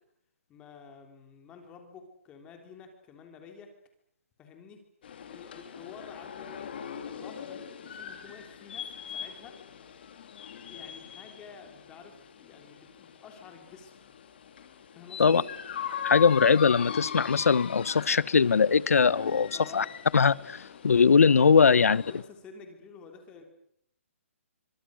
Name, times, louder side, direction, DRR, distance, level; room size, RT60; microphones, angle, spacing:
voice 1, 0.5-3.7 4.4-4.8 5.3-6.7 7.0-9.6 10.7-13.9 14.9-15.4 19.5-19.9 21.6-23.4, left 5 dB, 15° left, 4 dB, 3.3 m, -50 dB
sound 1, 5.0-22.2, left 8 dB, 45° left, 3.7 m, -41 dB
voice 2, 16.0-19.8 20.1-22.0, left 5 dB, 80° left, 20 dB, 1.1 m, -21 dB
28.5 x 25.0 x 6.4 m, 0.72 s
hypercardioid pair, 170°, 8 cm